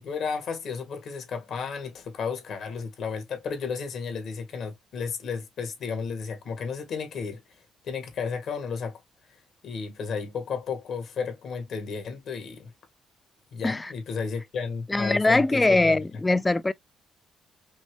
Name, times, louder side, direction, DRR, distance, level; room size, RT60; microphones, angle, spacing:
voice 1, 0.0-7.4 7.8-9.0 9.6-12.7 13.5-16.0, left 5 dB, 65° left, 1.7 m, -33 dB
voice 2, 14.9-16.7, left 2 dB, 20° left, 0.4 m, -22 dB
5.3 x 2.1 x 3.1 m
cardioid pair, 90°, 0 cm